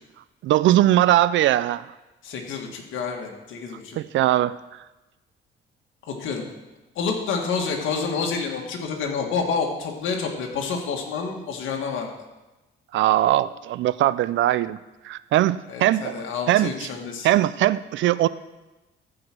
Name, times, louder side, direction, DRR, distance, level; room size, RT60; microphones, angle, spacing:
voice 1, 0.4-1.9 4.0-4.6 12.9-14.8 15.0-16.1 16.5-16.9 17.2-18.3, right 14 dB, 70° right, 17 dB, 0.5 m, -20 dB
voice 2, 2.2-4.0 6.1-6.4 7.0-12.1 15.7-17.3, left 5 dB, 80° left, 2 dB, 2.0 m, -28 dB
13.5 x 5.0 x 6.1 m, 1.1 s
cardioid pair, 90°, 20 cm